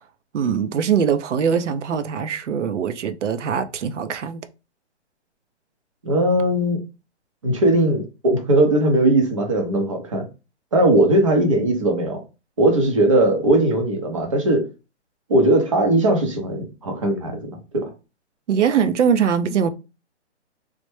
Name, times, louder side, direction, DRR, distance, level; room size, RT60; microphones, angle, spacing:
voice 1, 0.3-4.4 18.5-19.7, right 7 dB, 85° right, 0.6 m, -22 dB
voice 2, 6.0-6.8 7.4-10.3 10.7-12.2 12.6-14.7 15.3-17.4 17.7-17.9, right 1 dB, 30° right, 0.5 m, -19 dB
3.2 x 2.1 x 3.1 m
hypercardioid pair, 165°, 35 cm